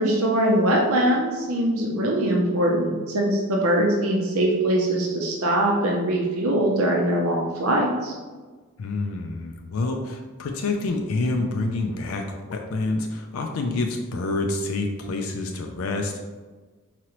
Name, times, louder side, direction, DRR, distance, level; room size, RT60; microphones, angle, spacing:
voice 1, 0.0-8.1, right 1 dB, 80° right, -1 dB, 0.6 m, -22 dB
voice 2, 8.8-16.2, left 2 dB, 75° left, 3 dB, 0.4 m, -27 dB
4.8 x 3.0 x 3.0 m, 1.3 s
head